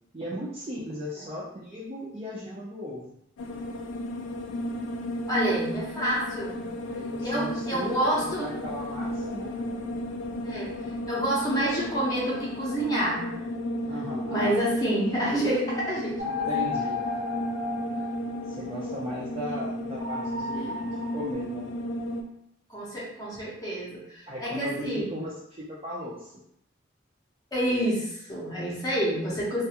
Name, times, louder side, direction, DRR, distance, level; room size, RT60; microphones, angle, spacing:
voice 1, 0.1-3.1 6.8-9.6 13.9-14.5 16.3-17.0 18.5-21.7 24.3-26.3, equal, 30° right, -7 dB, 0.4 m, -36 dB
sound 1, 3.4-22.2, left 1 dB, 70° left, 0.3 m, -34 dB
voice 2, 5.3-6.6 7.2-8.5 10.4-10.7 11.1-13.2 14.3-16.5 20.5-20.8 22.7-25.1 27.5-29.6, right 1 dB, 20° left, -7 dB, 0.7 m, -28 dB
sound 2, 16.2-18.8 20.0-21.3, left 4 dB, 60° right, 0.8 m, -33 dB
2.4 x 2.3 x 2.8 m, 0.75 s
head